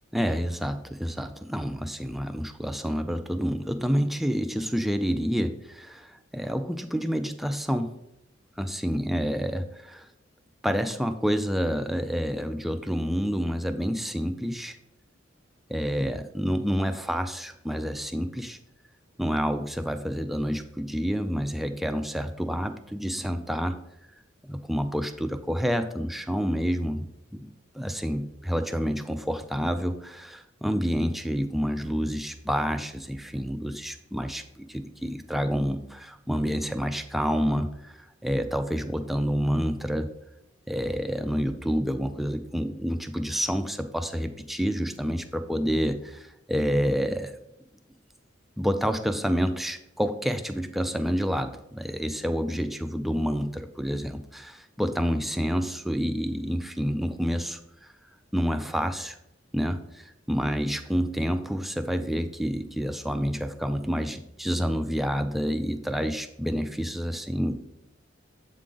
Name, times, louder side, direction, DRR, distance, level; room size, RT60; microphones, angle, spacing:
voice 1, 0.1-8.0 8.6-10.1 10.6-14.8 15.7-18.6 19.2-23.8 24.4-40.1 40.7-47.4 48.6-57.9 58.3-59.2 59.5-67.6, equal, ahead, 8 dB, 0.3 m, -28 dB
7.4 x 3.7 x 3.8 m, 0.82 s
head